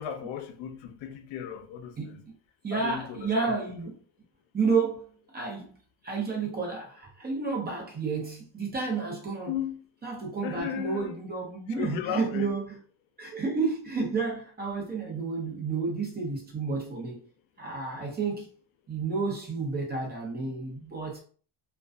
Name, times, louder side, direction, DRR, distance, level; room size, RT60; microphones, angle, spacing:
voice 1, 0.0-2.2 2.7-3.5 9.5-9.8 10.4-11.1 11.8-12.5, left 9 dB, 80° left, 0.5 m, -35 dB
voice 2, 2.0-2.3 2.6-4.0 4.5-5.7 6.0-9.5 10.0-12.8 13.2-17.2 17.6-18.5 18.9-21.2, right 4 dB, 20° right, 0.6 m, -31 dB
2.4 x 2.2 x 2.4 m
cardioid pair, 170°, 46 cm